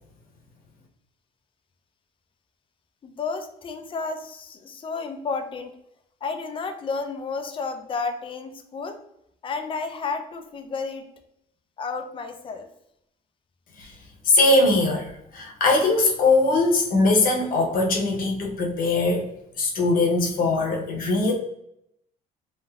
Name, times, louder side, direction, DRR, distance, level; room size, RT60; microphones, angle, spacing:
voice 1, 3.0-5.7 6.2-9.0 9.4-11.1 11.8-12.7, left 4 dB, 30° left, 7 dB, 0.4 m, -31 dB
voice 2, 14.2-19.3 19.6-21.3, left 2 dB, 55° left, 0 dB, 0.9 m, -21 dB
3.2 x 2.6 x 2.3 m, 0.76 s
cardioid pair, 110°, 17 cm